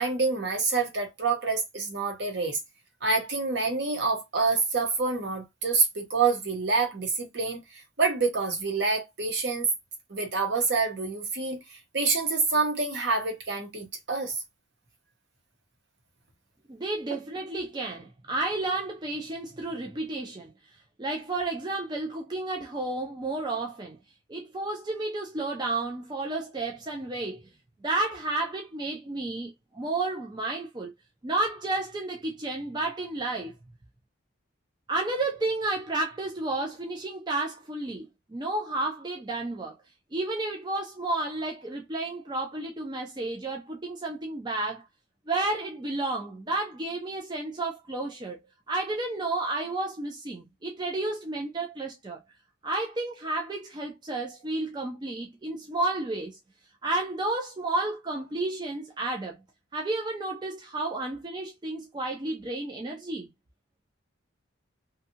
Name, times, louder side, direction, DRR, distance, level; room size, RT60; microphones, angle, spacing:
voice 1, 0.0-2.6 3.0-7.6 8.0-9.7 10.1-14.4, right 4 dB, 55° right, 0.8 m, -27 dB
voice 2, 16.7-20.5 21.0-24.0 24.3-27.5 27.8-30.9 31.2-33.5 34.9-39.7 40.1-44.8 45.3-48.4 48.7-52.2 52.6-56.4 56.8-59.4 59.7-63.3, right 2 dB, 20° right, 0.4 m, -31 dB
2.6 x 2.3 x 2.7 m
head